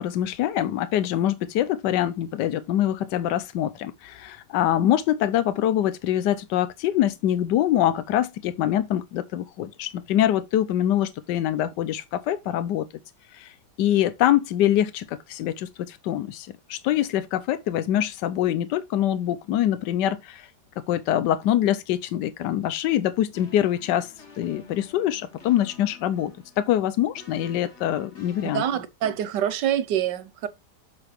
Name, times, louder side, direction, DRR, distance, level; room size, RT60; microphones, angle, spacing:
voice 1, 0.0-12.9 13.3-13.5 13.8-20.5 20.9-26.3 26.6-28.6, left 11 dB, 90° left, 1.3 m, -24 dB
sound 1, 23.3-28.7, left 4 dB, 40° left, 1.9 m, -49 dB
voice 2, 28.5-30.5, right 10 dB, 85° right, 1.5 m, -26 dB
7.0 x 6.8 x 3.1 m
omnidirectional pair, 1.8 m